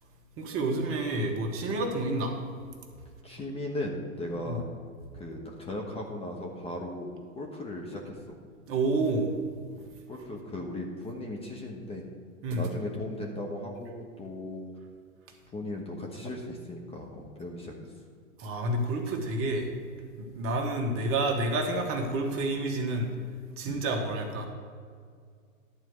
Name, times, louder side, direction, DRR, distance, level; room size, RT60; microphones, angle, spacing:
voice 1, 0.4-2.3 4.5-4.6 8.7-9.3 12.4-12.7 18.4-19.7 20.2-23.1 23.6-24.5, right 2 dB, 30° right, 2 dB, 1.5 m, -29 dB
voice 2, 3.2-4.6 5.1-8.4 9.8-12.0 12.5-14.6 15.5-17.7 23.6-23.8, left 1 dB, 15° left, 0 dB, 1.2 m, -37 dB
11.5 x 4.6 x 8.0 m, 2.1 s
hypercardioid pair, 115°, 41 cm